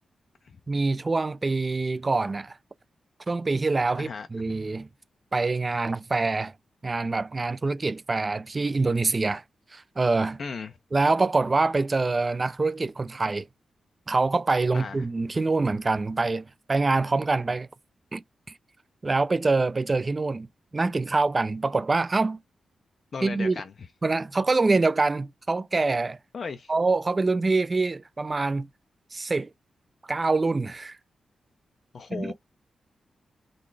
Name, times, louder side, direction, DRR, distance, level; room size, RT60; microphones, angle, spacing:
voice 1, 0.7-2.6 3.3-4.9 5.3-6.5 6.8-9.4 9.7-10.4 10.9-13.5 14.1-17.7 18.1-18.2 19.0-20.5 20.7-22.4 23.2-23.6 24.0-26.2 26.7-28.7 29.1-29.5 30.1-31.0 32.1-32.3, right 3 dB, 25° right, 0.3 m, -25 dB
voice 2, 4.0-4.3 10.4-10.7 14.7-15.1 23.1-23.7 26.3-26.7 31.9-32.3, left 5 dB, 50° left, 0.4 m, -35 dB
3.8 x 2.3 x 3.2 m
wide cardioid pair, 130°, 0 cm